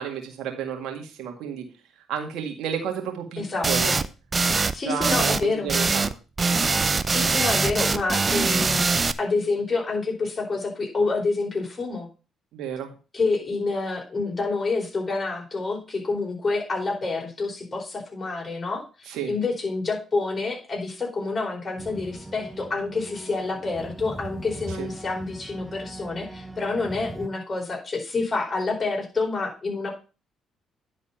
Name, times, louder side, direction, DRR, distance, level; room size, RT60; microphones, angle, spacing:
voice 1, 0.0-1.7 2.1-4.0 4.8-6.1 12.5-12.9 19.1-19.3 24.7-24.9, right 8 dB, 75° right, 4 dB, 1.9 m, -31 dB
voice 2, 3.4-4.0 4.7-5.7 7.1-12.1 13.1-29.9, left 3 dB, 30° left, -1 dB, 4.5 m, -28 dB
sound 1, 3.6-4.1 4.3-4.7 5.0-5.4 5.7-6.1 6.4-9.1, right 4 dB, 35° right, 0.5 m, -22 dB
sound 2, 21.8-27.3, right 1 dB, 15° right, 0.9 m, -40 dB
10.5 x 4.2 x 5.6 m, 0.33 s
supercardioid pair, 60°, 0 cm